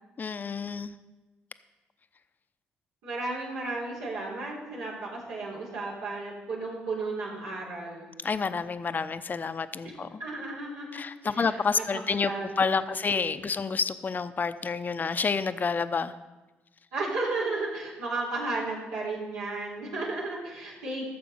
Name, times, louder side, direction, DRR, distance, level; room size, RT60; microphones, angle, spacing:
voice 1, 0.2-0.9 8.2-10.2 10.9-16.1, left 5 dB, 40° left, 12 dB, 0.7 m, -29 dB
voice 2, 3.0-8.1 9.8-9.9 10.2-12.8 13.1-13.5 16.9-21.1, right 2 dB, 85° right, -5 dB, 3.7 m, -34 dB
14.0 x 6.8 x 5.4 m, 1.2 s
supercardioid pair, 55°, 5 cm